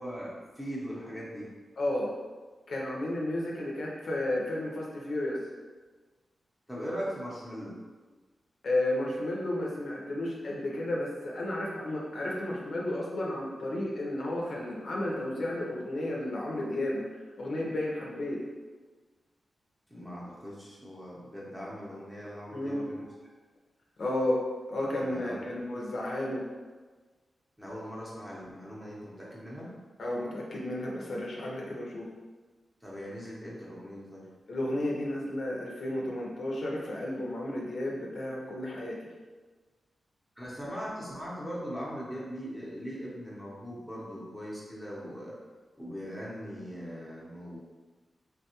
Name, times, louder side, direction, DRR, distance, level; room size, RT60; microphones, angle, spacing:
voice 1, 0.0-1.5 6.7-7.8 19.9-23.1 25.0-25.4 27.6-29.7 32.8-34.3 40.4-45.4 45.8-47.6, equal, 5° right, -6 dB, 0.7 m, -40 dB
voice 2, 1.8-2.1 2.7-5.4 8.6-17.0 17.4-18.4 22.5-22.9 24.0-24.4 24.7-26.4 30.0-32.0 34.5-39.0, left 1 dB, 60° left, -3 dB, 0.5 m, -32 dB
3.4 x 2.2 x 2.8 m, 1.3 s
wide cardioid pair, 160°, 0 cm